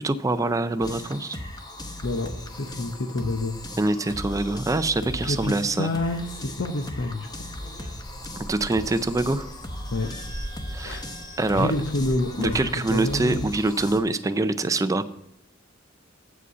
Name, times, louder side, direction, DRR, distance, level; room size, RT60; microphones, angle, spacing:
voice 1, 0.0-1.4 3.8-5.9 8.4-9.5 10.7-11.0 11.4-11.7 12.4-15.1, right 2 dB, 15° right, 12 dB, 0.4 m, -24 dB
sound 1, 0.8-14.0, left 1 dB, 20° left, 0.8 m, -38 dB
voice 2, 2.0-3.5 5.2-7.5 9.9-10.1 10.8-11.0 11.5-12.6 12.9-13.5, left 2 dB, 65° left, 4 dB, 0.7 m, -28 dB
sound 2, 6.3-12.7, equal, 35° left, 2.1 m, -42 dB
8.0 x 5.1 x 6.7 m, 0.79 s
head